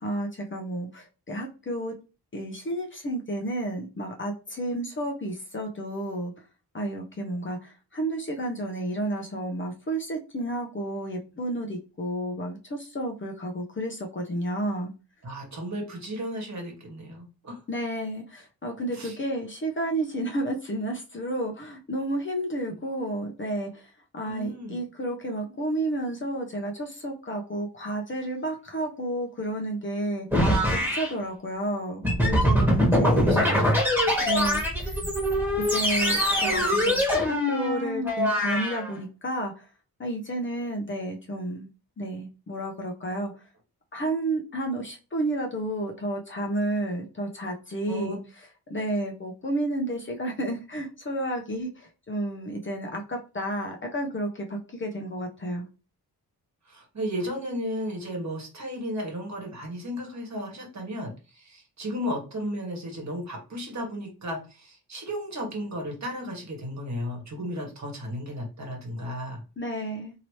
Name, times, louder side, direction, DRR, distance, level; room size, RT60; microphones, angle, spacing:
voice 1, 0.0-1.9 2.3-6.3 6.7-14.9 17.7-30.5 30.8-33.4 34.2-35.0 35.6-39.6 40.0-41.7 42.0-43.3 43.9-48.2 48.7-55.6 69.6-70.1, right 1 dB, 30° left, 1 dB, 0.7 m, -31 dB
voice 2, 15.2-17.6 18.9-19.2 22.6-22.8 24.3-24.8 32.6-32.7 33.0-33.7 35.0-35.1 47.9-48.2 56.7-69.4, equal, 45° right, 1 dB, 1.4 m, -34 dB
sound 1, 30.3-31.1 32.0-38.9, equal, 5° right, 1.4 m, -23 dB
2.9 x 2.8 x 3.1 m, 0.32 s
cardioid pair, 95°, 38 cm